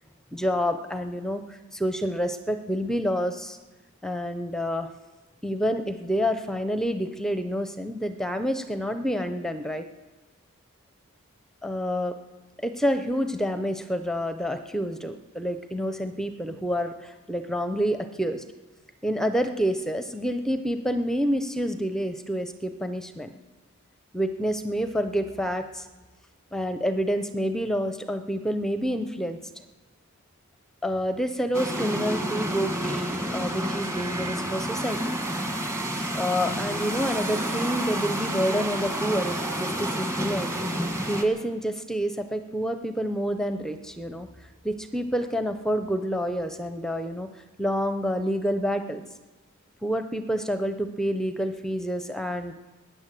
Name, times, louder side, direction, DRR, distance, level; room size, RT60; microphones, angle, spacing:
voice 1, 0.3-3.6 4.0-4.9 5.4-9.8 11.6-12.1 12.6-18.4 19.0-23.3 24.1-25.9 26.5-29.4 30.8-35.0 36.2-40.5 41.1-44.3 44.6-47.3 47.6-49.0 49.8-52.5, equal, ahead, 8 dB, 0.6 m, -28 dB
sound 1, 31.5-41.3, right 1 dB, 15° right, 1.4 m, -29 dB
20.5 x 9.4 x 7.6 m, 1.2 s
head